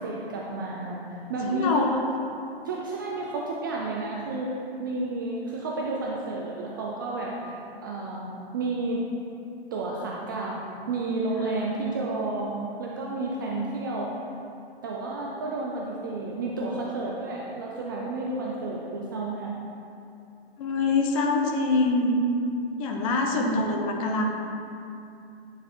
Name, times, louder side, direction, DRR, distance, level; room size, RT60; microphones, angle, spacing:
voice 1, 0.0-1.9 2.6-4.5 4.8-8.3 8.5-9.0 9.7-10.6 10.9-14.1 14.8-19.5 23.4-23.7, right 2 dB, 20° right, -3 dB, 0.3 m, -31 dB
voice 2, 1.5-1.9 20.6-22.2 22.8-24.2, left 3 dB, 35° left, 2 dB, 0.8 m, -25 dB
9.2 x 3.3 x 4.2 m, 2.6 s
hypercardioid pair, 145°, 31 cm